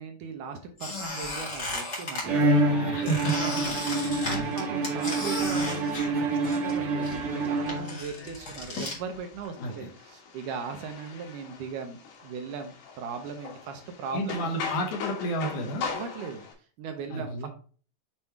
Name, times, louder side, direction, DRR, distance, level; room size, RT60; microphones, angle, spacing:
voice 1, 0.0-3.1 3.4-14.5 15.9-17.5, right 5 dB, 75° right, 5 dB, 2.1 m, -38 dB
Squeak, 0.8-2.3 3.1-6.8 7.0-9.0, left 2 dB, 30° left, 1.5 m, -35 dB
Bowed string instrument, 2.2-8.3, right 2 dB, 60° right, 1.5 m, -27 dB
voice 2, 2.6-3.7 4.2-4.5 9.6-9.7 14.1-15.9 17.1-17.5, right 1 dB, 70° left, 3 dB, 2.3 m, -31 dB
sound 1, 7.1-16.5, left 5 dB, 85° left, 3.2 m, -41 dB
7.2 x 3.2 x 4.5 m, 0.41 s
omnidirectional pair, 4.0 m